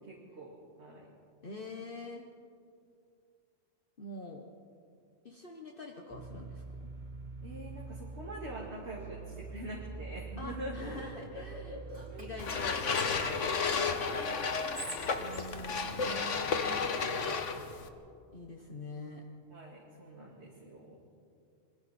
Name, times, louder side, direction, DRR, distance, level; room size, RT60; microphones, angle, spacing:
voice 1, 0.0-1.1 7.4-12.4 13.2-15.8 16.1-17.4 19.5-21.0, right 1 dB, 65° right, -4 dB, 2.8 m, -46 dB
voice 2, 1.4-2.2 4.0-4.4 5.2-6.9 10.4-11.8 12.2-12.8 15.1-17.1 18.3-19.2, left 2 dB, 50° left, 1 dB, 1.5 m, -45 dB
sound 1, 6.1-12.4, right 4 dB, 40° right, 1.2 m, -45 dB
Whispering, 11.9-13.9 14.5-16.6, right 2 dB, 80° right, 5.1 m, -48 dB
sound 2, 12.4-17.9, left 5 dB, 90° left, 1.6 m, -32 dB
27.5 x 23.0 x 4.4 m, 2.4 s
omnidirectional pair, 1.2 m